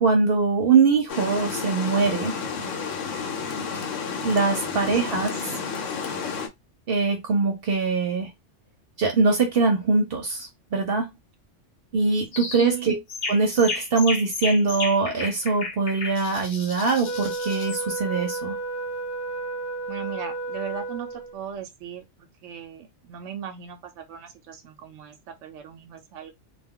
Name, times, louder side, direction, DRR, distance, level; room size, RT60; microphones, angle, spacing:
voice 1, 0.0-2.4 4.2-5.5 6.9-8.3 9.0-11.2 11.9-13.0 13.3-18.6, right 4 dB, 55° right, 0.8 m, -22 dB
Water, 1.1-6.5, left 5 dB, 80° left, 1.0 m, -31 dB
voice 2, 4.5-5.2 12.5-13.0 19.9-22.1 22.4-26.3, right 8 dB, 85° right, 0.9 m, -38 dB
sound 1, 12.3-12.7 13.1-17.8, left 3 dB, 60° left, 0.9 m, -33 dB
Wind instrument woodwind instrument, 17.0-21.4, right 3 dB, 15° left, 0.7 m, -32 dB
2.3 x 2.2 x 3.6 m
omnidirectional pair, 1.3 m